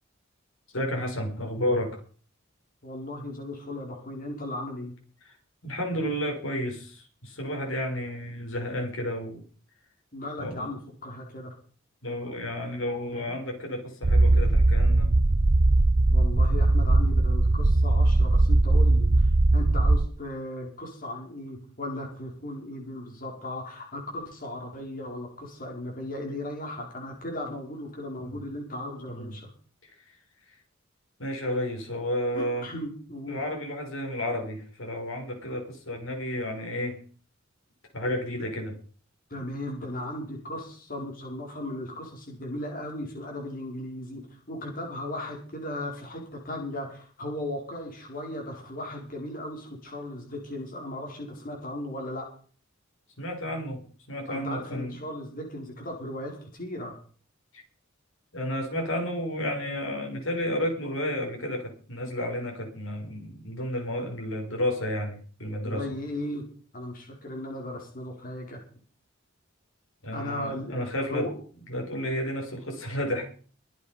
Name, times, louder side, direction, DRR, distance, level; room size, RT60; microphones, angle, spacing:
voice 1, 0.7-2.0 5.2-5.4 5.6-9.4 10.4-10.7 12.0-15.1 28.2-28.4 29.1-29.3 31.2-32.7 33.3-37.0 37.9-38.7 39.3-39.4 53.2-53.8 54.1-55.0 58.3-65.8 70.0-71.3 71.7-73.3, equal, 90° left, 2 dB, 5.6 m, -31 dB
voice 2, 2.8-4.9 10.1-11.5 13.1-13.2 16.1-29.5 32.3-33.4 39.3-52.3 54.3-57.0 65.6-66.4 66.7-68.6 70.1-70.8 71.1-71.3, left 1 dB, 45° left, 0 dB, 4.6 m, -36 dB
sound 1, 14.0-20.1, right 2 dB, 45° right, 0.7 m, -20 dB
23.0 x 8.4 x 5.1 m, 0.42 s
head